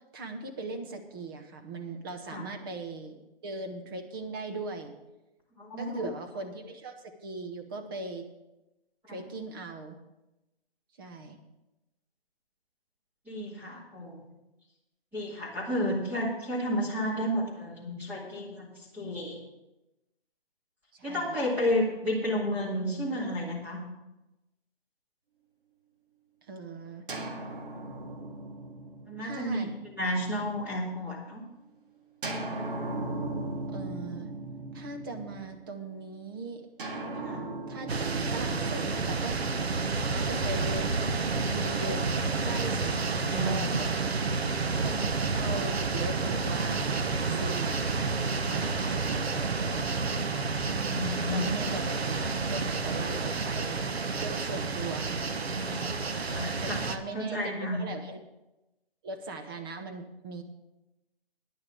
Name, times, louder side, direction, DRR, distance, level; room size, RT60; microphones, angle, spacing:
voice 1, 0.1-4.9 5.8-8.3 9.1-10.0 11.0-11.4 20.9-21.3 26.5-27.1 29.2-29.7 33.7-34.3 34.7-36.6 37.7-39.4 40.1-40.9 41.5-44.2 44.8-47.9 48.5-49.9 51.3-53.8 54.2-55.2 55.6-55.9 56.4-58.2 59.0-60.4, right 3 dB, 20° right, 6 dB, 1.0 m, -40 dB
voice 2, 5.6-6.0 9.1-9.2 13.3-14.2 15.1-19.4 21.0-23.8 29.1-31.4 37.2-37.4 39.9-40.1 43.1-43.7 50.8-51.5 55.7-56.8 57.1-57.8, left 1 dB, 5° right, -7 dB, 2.5 m, -32 dB
sound 1, 27.1-30.9 32.2-35.8 36.8-40.9, right 2 dB, 60° right, 2.1 m, -38 dB
sound 2, 37.9-57.0, right 4 dB, 90° right, 1.1 m, -30 dB
10.0 x 6.7 x 8.5 m, 0.98 s
hypercardioid pair, 160°, 31 cm